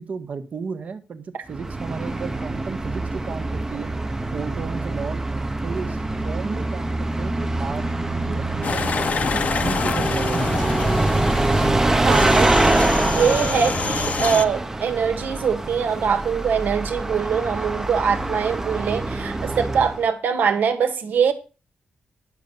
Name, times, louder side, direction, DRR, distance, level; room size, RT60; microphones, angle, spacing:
voice 1, 0.0-3.9 4.3-5.2 5.6-7.9 8.2-10.6, right 5 dB, 50° right, 1.4 m, -34 dB
Bus, 1.5-20.1, right 2 dB, 15° right, 0.9 m, -24 dB
sound 1, 8.6-11.7 12.1-14.4, left 5 dB, 50° left, 0.8 m, -27 dB
voice 2, 12.0-21.3, right 6 dB, 75° right, 1.7 m, -23 dB
10.5 x 6.7 x 7.1 m
wide cardioid pair, 145°, 3 cm